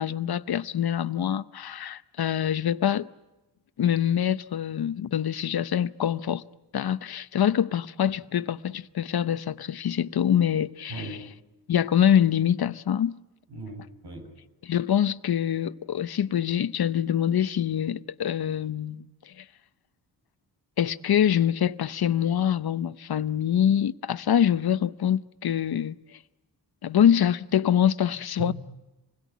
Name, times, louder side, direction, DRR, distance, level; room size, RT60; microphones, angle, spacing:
voice 1, 0.0-3.1 3.8-6.4 6.7-11.1 11.7-13.2 14.6-19.4 20.8-26.0 26.8-28.5, left 9 dB, 60° left, 0.9 m, -25 dB
voice 2, 10.9-11.3 13.5-14.3 28.4-28.5, right 2 dB, 65° right, 7.2 m, -38 dB
27.5 x 21.0 x 9.3 m
wide cardioid pair, 160°, 42 cm